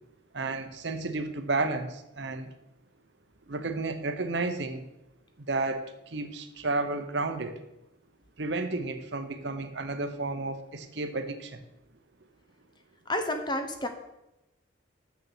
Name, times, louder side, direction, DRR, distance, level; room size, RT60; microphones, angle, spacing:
voice 1, 0.3-2.5 3.5-4.8 5.5-7.6 8.4-11.6, right 3 dB, 60° right, 9 dB, 0.8 m, -32 dB
voice 2, 13.1-13.9, left 1 dB, 20° left, 6 dB, 0.8 m, -30 dB
6.9 x 6.8 x 6.0 m, 0.91 s
head